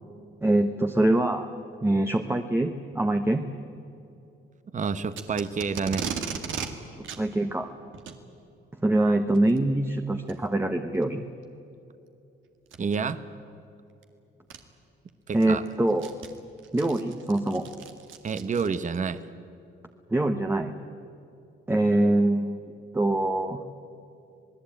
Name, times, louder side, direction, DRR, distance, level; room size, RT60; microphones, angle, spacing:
voice 1, 0.4-1.5 1.8-3.4 7.2-7.7 8.8-11.2 15.3-16.1 16.7-17.6 20.1-20.7 21.7-22.6 22.9-23.6, right 1 dB, 10° right, 5 dB, 1.1 m, -24 dB
voice 2, 4.7-6.1 12.8-13.2 15.3-15.6 18.2-19.2, right 5 dB, 40° right, 12 dB, 1.1 m, -28 dB
Packing tape duct tape, 5.1-6.7 7.0-7.2 7.9-8.2 9.3-9.6 10.3-10.4 11.0-11.1 12.7-13.0 14.0-14.1 14.5-14.6 15.1-19.0, right 7 dB, 80° right, 2.1 m, -36 dB
27.0 x 19.0 x 8.9 m, 2.7 s
cardioid pair, 90°, 20 cm